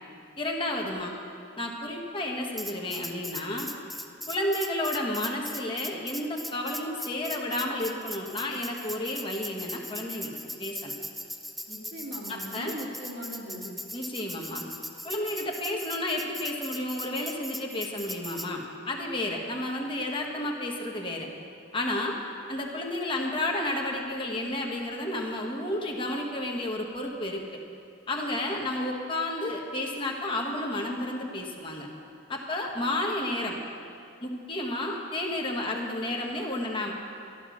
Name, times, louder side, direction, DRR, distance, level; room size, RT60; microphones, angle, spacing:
voice 1, 0.4-1.1 1.6-3.7 4.3-10.9 12.3-12.7 13.9-14.6 15.0-21.3 21.7-22.2 22.5-27.4 28.1-31.9 32.3-33.6 34.2-36.9, left 1 dB, 25° left, 0 dB, 1.4 m, -31 dB
Tambourine, 2.6-18.5, equal, ahead, 0.5 m, -39 dB
voice 2, 11.7-13.7, equal, 70° right, -3 dB, 2.6 m, -39 dB
13.0 x 12.0 x 6.3 m, 2.5 s
head